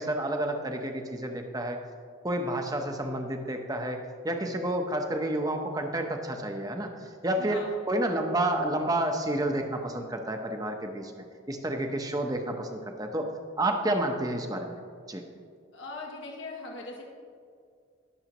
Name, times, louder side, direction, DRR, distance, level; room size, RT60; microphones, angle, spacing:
voice 1, 0.0-1.8 2.2-13.3 13.6-14.8 15.1-15.2, right 1 dB, 20° right, 4 dB, 0.9 m, -30 dB
voice 2, 7.4-7.7 15.7-17.0, left 3 dB, 65° left, -1 dB, 1.7 m, -40 dB
21.0 x 7.1 x 3.0 m, 2.1 s
head